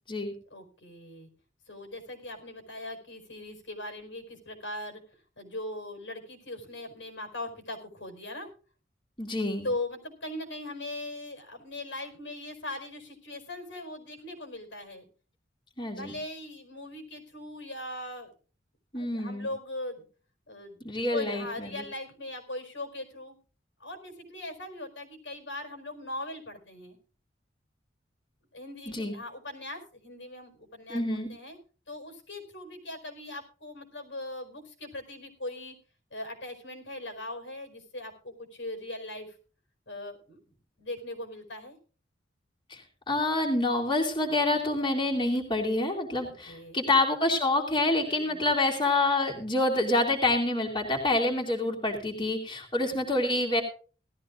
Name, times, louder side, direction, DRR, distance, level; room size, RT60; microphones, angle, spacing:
voice 1, 0.5-1.3 1.7-5.0 5.4-8.5 9.6-15.1 15.9-18.3 18.9-20.0 20.5-20.8 21.1-23.4 23.8-27.0 28.5-31.6 31.9-35.8 36.1-39.4 39.9-40.4 40.8-41.8 46.2-46.8 48.1-48.5, left 1 dB, 85° left, 4 dB, 4.7 m, -40 dB
voice 2, 9.2-9.7 15.8-16.2 18.9-19.5 20.8-21.8 28.9-29.1 30.9-31.3 42.7-42.8 43.1-53.6, left 2 dB, 25° left, -2 dB, 2.6 m, -27 dB
18.0 x 14.0 x 2.5 m, 0.37 s
head